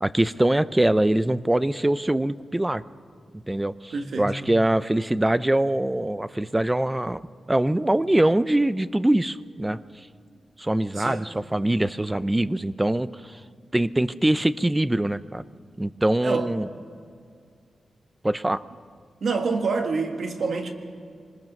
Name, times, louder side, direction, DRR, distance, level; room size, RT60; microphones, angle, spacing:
voice 1, 0.0-2.8 3.5-7.2 7.5-9.8 10.6-13.4 13.7-15.4 15.8-16.7 18.2-18.6, right 1 dB, 10° right, 15 dB, 0.5 m, -23 dB
voice 2, 3.9-4.4 10.9-11.3 16.2-16.5 19.2-20.7, right 4 dB, 60° right, 5 dB, 1.8 m, -27 dB
24.5 x 20.5 x 5.3 m, 2.3 s
wide cardioid pair, 135°, 0 cm